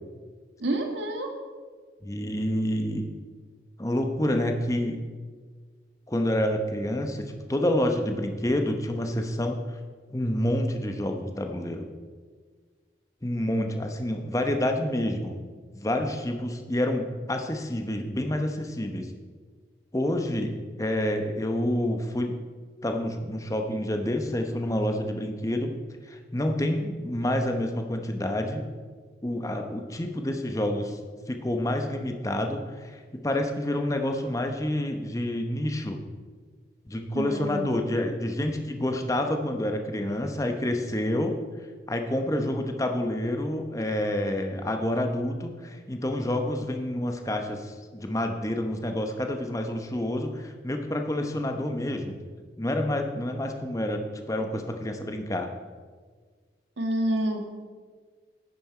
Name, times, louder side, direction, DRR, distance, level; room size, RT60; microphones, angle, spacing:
voice 1, 0.6-1.3 37.1-37.7 56.8-57.6, right 1 dB, 80° right, 3 dB, 1.6 m, -28 dB
voice 2, 2.0-3.1 3.8-5.0 6.1-9.6 10.1-11.9 13.2-15.4 15.7-19.1 19.9-22.4 22.8-25.7 26.1-28.7 29.2-31.0 31.3-36.0 36.9-41.4 41.9-52.2 52.6-55.5, left 1 dB, 20° left, 5 dB, 0.8 m, -28 dB
10.5 x 9.5 x 4.4 m, 1.5 s
head